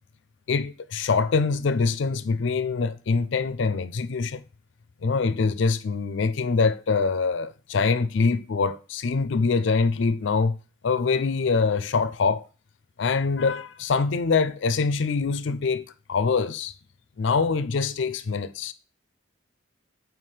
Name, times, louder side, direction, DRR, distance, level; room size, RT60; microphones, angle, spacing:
voice 1, 0.5-4.4 5.0-10.6 10.8-12.5 13.0-16.7 17.2-18.7, left 4 dB, 70° left, 0.4 m, -24 dB
7.5 x 4.7 x 3.2 m
head